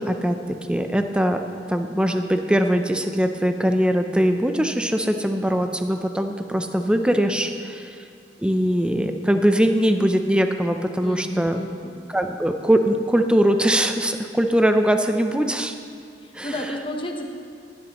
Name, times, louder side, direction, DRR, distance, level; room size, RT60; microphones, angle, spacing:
voice 1, 0.0-1.4 1.7-8.0 8.4-11.6 12.1-15.7 16.3-16.6, equal, 5° right, 6 dB, 0.5 m, -21 dB
voice 2, 11.0-12.0 16.2-17.3, left 1 dB, 30° left, 2 dB, 1.0 m, -32 dB
15.5 x 10.5 x 3.0 m, 2.4 s
head